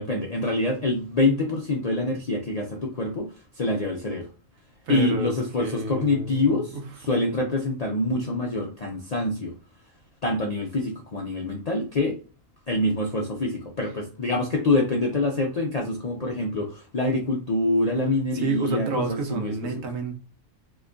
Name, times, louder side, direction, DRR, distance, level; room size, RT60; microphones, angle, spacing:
voice 1, 0.0-3.3 3.6-4.3 4.9-9.5 10.2-12.2 12.7-19.8, left 2 dB, 55° left, 0 dB, 0.4 m, -25 dB
voice 2, 4.9-6.8 18.3-20.2, right 3 dB, 85° right, 4 dB, 1.2 m, -30 dB
2.9 x 2.2 x 3.7 m, 0.34 s
omnidirectional pair, 1.4 m